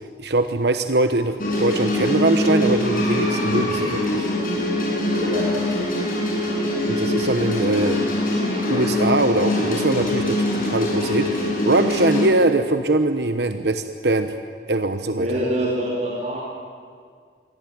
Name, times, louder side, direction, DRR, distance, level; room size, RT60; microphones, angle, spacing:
voice 1, 0.0-4.3 6.9-8.1 8.7-14.3 14.7-15.3, right 2 dB, 65° right, 8 dB, 1.1 m, -22 dB
sound 1, 1.4-12.3, left 1 dB, 50° left, 7.5 m, -23 dB
voice 2, 15.1-16.4, right 1 dB, 40° right, -4 dB, 4.1 m, -25 dB
26.5 x 23.0 x 9.4 m, 2.1 s
head